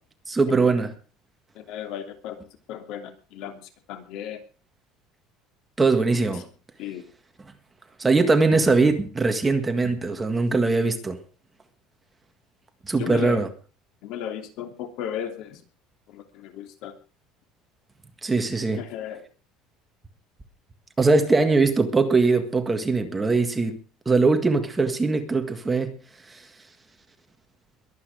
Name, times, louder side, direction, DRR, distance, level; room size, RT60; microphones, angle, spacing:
voice 1, 0.3-0.9 5.8-6.5 8.0-11.2 12.9-13.5 18.2-18.8 21.0-23.8 24.1-25.9 26.3-26.4, right 3 dB, 15° right, 1.8 m, -21 dB
voice 2, 1.5-4.4 6.8-7.1 13.0-13.4 14.0-15.6 16.1-16.9 18.8-19.3, left 10 dB, 60° left, 3.0 m, -35 dB
22.5 x 8.8 x 5.0 m
cardioid pair, 150°, 0 cm